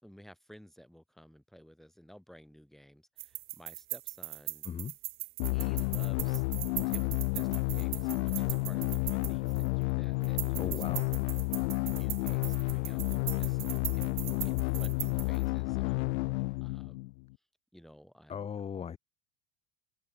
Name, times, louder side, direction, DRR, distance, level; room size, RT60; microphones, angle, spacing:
voice 1, 0.0-4.7 5.5-6.4 6.9-10.7 11.8-13.6 13.9-16.2 16.6-17.1 17.7-18.5, equal, ahead, 4.7 m, -55 dB
sound 1, 3.2-9.8 10.2-15.5, right 17 dB, 35° right, 3.3 m, -40 dB
sound 2, 5.4-17.3, left 25 dB, 75° left, 0.7 m, -31 dB
voice 2, 10.6-11.1 18.3-19.0, left 7 dB, 15° left, 2.3 m, -37 dB
cardioid pair, 180°, 35 cm